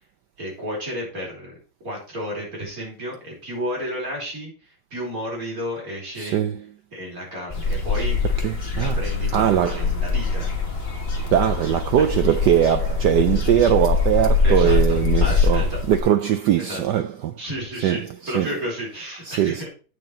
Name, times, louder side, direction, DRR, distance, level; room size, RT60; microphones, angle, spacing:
voice 1, 0.4-6.4 6.9-8.2 8.7-10.5 12.0-12.1 14.4-15.8 16.6-16.8 17.4-19.7, equal, 40° right, 5.0 m, -32 dB
voice 2, 6.2-6.6 8.4-9.0 9.3-9.9 11.3-17.4 17.8-18.5 19.3-19.7, right 10 dB, 75° right, 1.0 m, -21 dB
sound 1, 7.5-16.0, left 4 dB, 30° left, 1.9 m, -23 dB
9.1 x 6.5 x 4.3 m
omnidirectional pair, 2.3 m